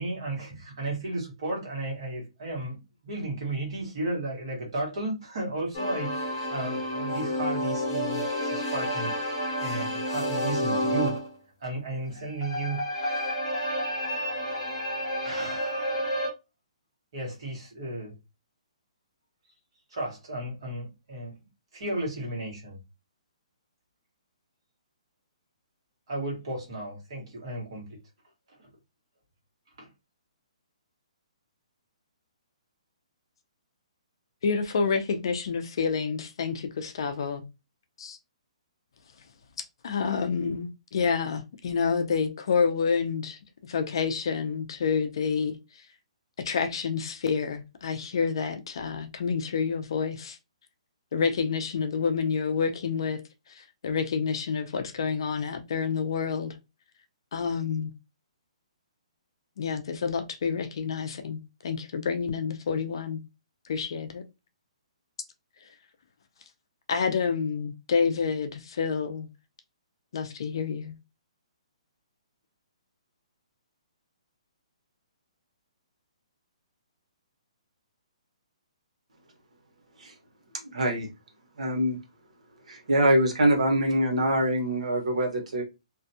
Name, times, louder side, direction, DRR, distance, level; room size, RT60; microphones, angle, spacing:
voice 1, 0.0-9.2 9.6-11.2 11.6-12.8 13.1-13.3 15.2-16.2 17.1-18.2 19.9-21.3 21.7-22.8 26.1-27.9 29.8-29.9, right 2 dB, 45° right, 1.3 m, -34 dB
sound 1, 5.7-11.3 12.2-16.3, equal, 30° left, 1.0 m, -30 dB
voice 2, 34.4-37.4 38.0-38.2 39.8-45.6 46.4-50.4 51.1-53.2 53.5-56.5 57.3-57.9 59.6-63.2 63.6-64.2 66.9-69.3 70.1-70.9, left 5 dB, 45° left, 0.4 m, -28 dB
voice 3, 80.5-81.1 81.6-82.0 82.7-85.6, right 1 dB, 75° right, 1.1 m, -24 dB
2.5 x 2.2 x 2.7 m
hypercardioid pair, 175°, 4 cm